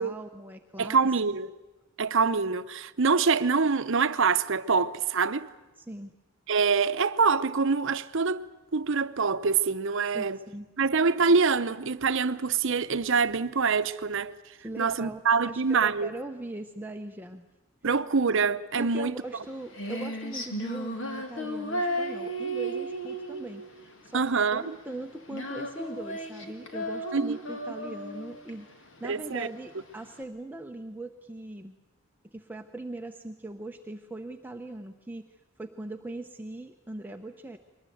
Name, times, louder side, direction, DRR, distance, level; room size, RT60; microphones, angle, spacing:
voice 1, 0.0-1.0 5.8-6.1 10.1-10.7 14.6-17.5 18.8-24.2 24.5-31.7 32.3-37.6, right 2 dB, 10° right, 0.7 m, -40 dB
voice 2, 0.8-1.5 2.0-5.5 6.5-8.4 8.7-10.4 10.8-14.3 14.8-16.1 17.8-19.2 24.1-24.8 27.1-27.4 29.0-29.5, right 5 dB, 60° right, 0.8 m, -25 dB
Female singing, 19.2-30.2, right 1 dB, 60° left, 2.5 m, -35 dB
23.0 x 19.5 x 9.3 m
head